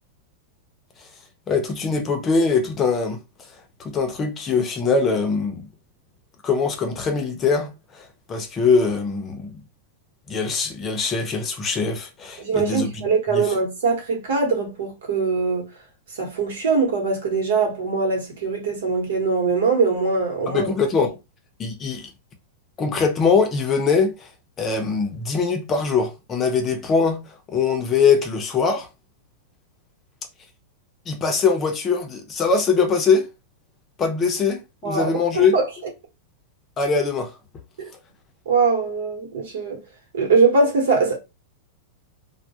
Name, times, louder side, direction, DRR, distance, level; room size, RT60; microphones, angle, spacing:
voice 1, 1.5-5.7 6.4-9.6 10.3-12.9 13.3-13.5 20.5-21.2 21.6-22.1 22.8-24.3 24.6-28.9 31.1-33.3 34.0-35.6 36.8-37.4, left 5 dB, 20° left, 0.5 m, -22 dB
voice 2, 12.4-15.7 16.2-20.7 34.8-35.7 37.8-37.9 38.5-39.8 40.1-41.2, right 4 dB, 85° right, 1.0 m, -22 dB
2.2 x 2.1 x 2.7 m
supercardioid pair, 150°, 0 cm